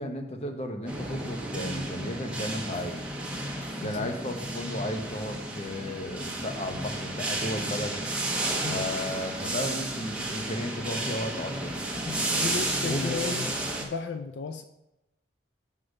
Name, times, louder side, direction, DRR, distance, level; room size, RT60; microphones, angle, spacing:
voice 1, 0.0-3.0 3.8-8.0 8.7-11.8 12.8-13.4, left 1 dB, 35° left, 5 dB, 0.9 m, -34 dB
sound 1, 0.9-13.8, right 1 dB, 5° right, 1.0 m, -32 dB
voice 2, 3.8-4.2 8.6-8.9 12.1-13.5 13.8-14.6, left 5 dB, 75° left, 9 dB, 0.4 m, -35 dB
7.9 x 3.8 x 6.4 m, 0.91 s
head